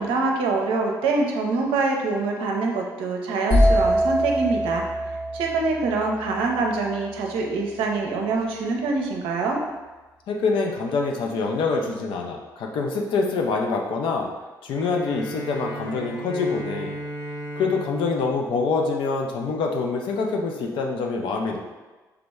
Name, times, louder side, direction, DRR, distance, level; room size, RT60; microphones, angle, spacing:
voice 1, 0.0-4.8 5.3-9.6, right 3 dB, 60° right, 1 dB, 0.6 m, -25 dB
sound 1, 3.5-7.3, equal, 75° left, 1.4 m, -23 dB
voice 2, 10.3-14.3 14.6-17.0 17.6-21.6, left 4 dB, 55° left, 1 dB, 0.5 m, -25 dB
Bowed string instrument, 14.7-19.7, right 1 dB, 35° left, 0.9 m, -36 dB
3.4 x 2.9 x 3.5 m, 1.2 s
figure-of-eight pair, 40°, 10 cm